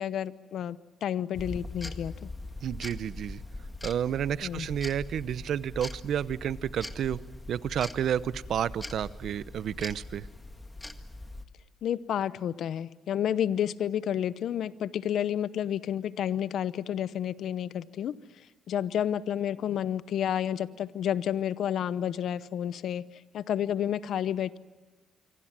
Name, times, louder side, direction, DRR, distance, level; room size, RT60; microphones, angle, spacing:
voice 1, 0.0-2.3 4.4-4.7 11.8-23.0 23.3-24.6, left 10 dB, 70° left, 16 dB, 0.8 m, -30 dB
sound 1, 1.3-11.4, left 2 dB, 15° left, 1.8 m, -42 dB
voice 2, 2.6-3.4 3.8-7.2 7.5-10.3, right 9 dB, 65° right, 17 dB, 0.8 m, -31 dB
26.5 x 24.0 x 7.5 m, 1.3 s
cardioid pair, 90°, 0 cm